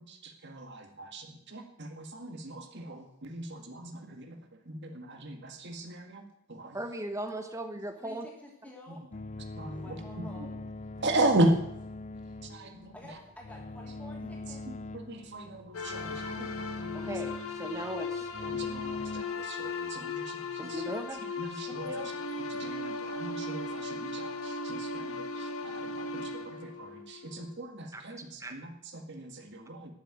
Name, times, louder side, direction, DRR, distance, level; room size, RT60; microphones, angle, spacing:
voice 1, 0.0-6.8 8.9-9.1 9.4-10.6 11.0-11.9 12.2-13.2 14.5-17.2 18.4-29.9, right 1 dB, 50° right, 5 dB, 1.8 m, -36 dB
voice 2, 6.7-8.3 16.9-18.3 20.6-21.2 21.8-22.1 27.9-28.0 28.4-28.5, right 1 dB, 15° right, 7 dB, 0.9 m, -38 dB
voice 3, 8.0-9.0 9.7-10.5 12.9-14.6, left 1 dB, 5° left, -2 dB, 3.0 m, -50 dB
sound 1, 9.1-19.2, left 2 dB, 30° left, 0.4 m, -42 dB
sound 2, 15.7-27.6, left 3 dB, 75° left, 1.6 m, -37 dB
12.5 x 6.9 x 9.1 m, 0.75 s
head